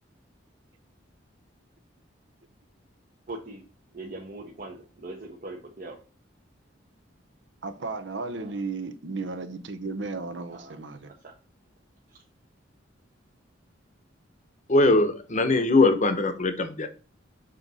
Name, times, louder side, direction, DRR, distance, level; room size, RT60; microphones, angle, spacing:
voice 1, 3.3-3.6 3.9-6.0 8.4-8.6 10.5-10.8 11.2-11.3, right 2 dB, 45° right, 1.0 m, -40 dB
voice 2, 7.6-11.1, right 3 dB, 70° right, 0.8 m, -34 dB
voice 3, 14.7-16.9, left 2 dB, 40° left, 0.9 m, -21 dB
6.5 x 3.8 x 4.1 m
head